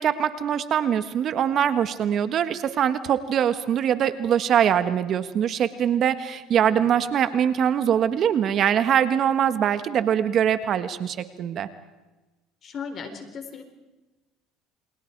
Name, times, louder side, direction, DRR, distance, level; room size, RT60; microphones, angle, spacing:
voice 1, 0.0-11.7, right 9 dB, 50° right, 11 dB, 1.4 m, -23 dB
voice 2, 12.6-13.6, left 6 dB, 45° left, 6 dB, 4.4 m, -36 dB
29.0 x 23.0 x 4.7 m, 1.1 s
supercardioid pair, 95°, 0 cm